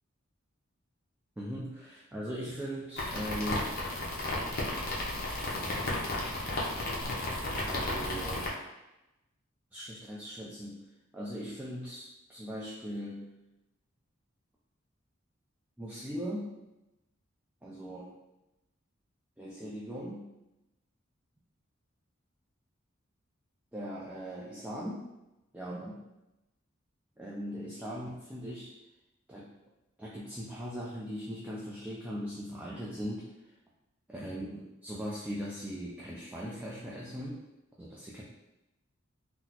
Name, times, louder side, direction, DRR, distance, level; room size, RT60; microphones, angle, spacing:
voice 1, 1.4-3.7 5.5-5.9 7.7-8.5 9.7-10.8 11.1-13.3 15.8-16.5 17.6-18.1 19.4-20.3 23.7-25.1 25.5-26.0 27.2-28.7 29.3-29.5 30.0-33.2 34.1-37.4 37.8-38.2, equal, 5° right, -6 dB, 0.3 m, -39 dB
sound 1, 3.0-8.5, left 1 dB, 50° left, 0.7 m, -33 dB
3.9 x 2.0 x 2.8 m, 0.95 s
head